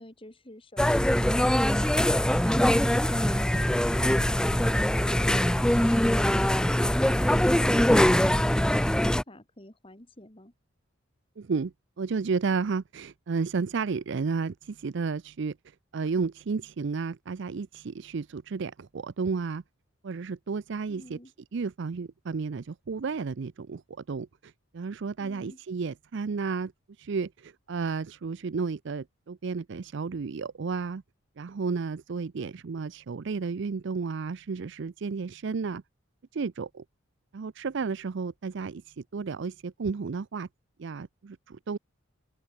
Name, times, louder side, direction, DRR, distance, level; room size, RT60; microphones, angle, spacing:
voice 1, 0.0-6.6 7.0-10.5 20.9-21.3 25.2-25.6, left 1 dB, 25° left, 2.3 m, -48 dB
sound 1, 0.8-9.2, left 1 dB, 5° left, 0.4 m, -23 dB
voice 2, 11.4-19.6 20.0-21.2 21.5-23.8 24.1-31.0 31.4-35.8 36.3-36.8 37.3-40.5 40.8-41.8, right 5 dB, 55° right, 0.4 m, -32 dB
head